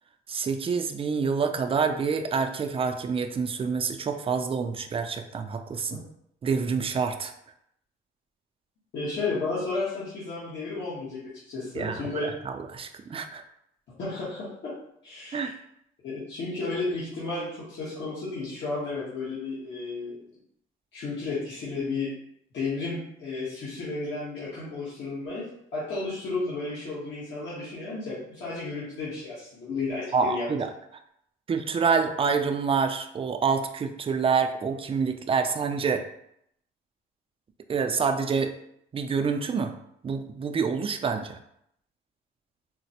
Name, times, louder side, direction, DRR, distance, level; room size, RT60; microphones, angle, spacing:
voice 1, 0.3-6.0 6.4-7.3 11.7-13.4 15.3-15.5 30.1-30.7 31.5-36.0 37.7-38.5 38.9-39.7 40.0-41.4, right 5 dB, 30° right, 7 dB, 0.4 m, -27 dB
voice 2, 8.9-12.3 14.0-14.7 15.0-15.5 16.0-20.3 20.9-22.1 22.5-30.5, left 3 dB, 65° left, -10 dB, 1.2 m, -33 dB
4.0 x 2.1 x 2.8 m, 0.74 s
cardioid pair, 90°, 20 cm